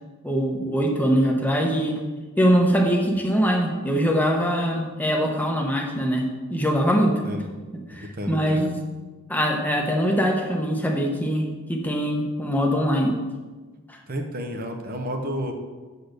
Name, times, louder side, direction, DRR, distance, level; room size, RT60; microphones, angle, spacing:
voice 1, 0.2-2.0 2.4-7.2 7.7-8.7 9.3-13.2 13.9-14.0, equal, 10° left, 1 dB, 0.9 m, -22 dB
voice 2, 7.9-8.7 14.1-15.5, equal, 45° right, 4 dB, 0.8 m, -31 dB
8.4 x 4.2 x 6.5 m, 1.3 s
head